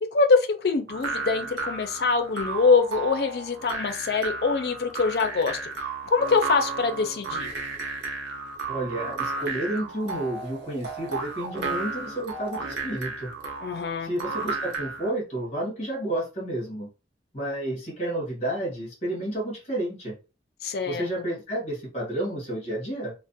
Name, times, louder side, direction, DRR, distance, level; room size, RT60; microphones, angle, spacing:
voice 1, 0.0-5.6 6.1-7.5 13.6-14.1 20.6-21.1, left 4 dB, 60° left, 0.4 m, -24 dB
sound 1, 0.9-15.1, right 4 dB, 75° right, 0.5 m, -33 dB
voice 2, 8.7-13.3 14.0-16.9 17.3-20.1 20.9-23.1, right 1 dB, 35° left, 0.9 m, -31 dB
2.4 x 2.1 x 2.6 m
head